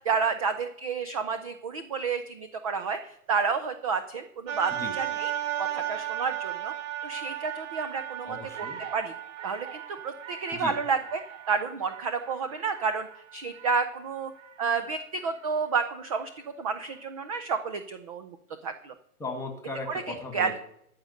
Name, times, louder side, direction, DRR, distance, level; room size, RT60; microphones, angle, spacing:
voice 1, 0.1-5.3 5.6-6.7 7.0-8.4 8.9-9.1 9.4-11.2 11.5-13.1 13.3-14.3 14.6-16.3 16.6-18.4 18.6-18.9 19.9-20.5, right 5 dB, 25° right, 9 dB, 0.5 m, -30 dB
sound 1, 4.5-14.7 15.2-15.4, right 11 dB, 55° right, 1.3 m, -36 dB
voice 2, 8.2-8.8 10.5-10.8 19.2-20.6, left 3 dB, 5° left, 5 dB, 1.8 m, -37 dB
14.5 x 5.2 x 7.8 m, 0.74 s
hypercardioid pair, 145°, 44 cm